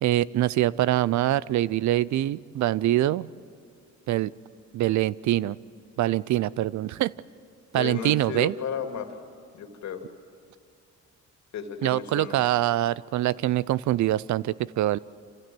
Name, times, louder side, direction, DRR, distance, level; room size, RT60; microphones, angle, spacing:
voice 1, 0.0-3.3 4.1-4.3 4.7-5.6 6.0-7.1 7.7-8.5 11.8-15.0, right 14 dB, 70° right, 21 dB, 0.5 m, -24 dB
voice 2, 7.7-9.2 9.5-10.0 11.5-12.4, left 7 dB, 65° left, 5 dB, 2.4 m, -34 dB
26.5 x 16.0 x 7.7 m, 2.4 s
cardioid pair, 90°, 30 cm